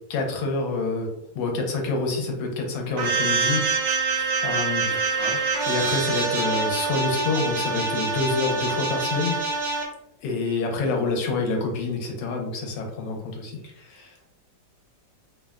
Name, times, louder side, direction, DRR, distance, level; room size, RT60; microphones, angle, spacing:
voice 1, 0.1-1.1 1.3-3.7 4.1-5.3 5.7-9.4 10.2-13.6, left 3 dB, 80° left, 1 dB, 1.3 m, -27 dB
sound 1, 3.0-9.9, right 4 dB, 80° right, 1.3 m, -25 dB
voice 2, 4.8-5.5 13.6-14.3, left 2 dB, 60° left, -3 dB, 1.1 m, -40 dB
3.2 x 2.1 x 2.3 m, 0.88 s
omnidirectional pair, 2.0 m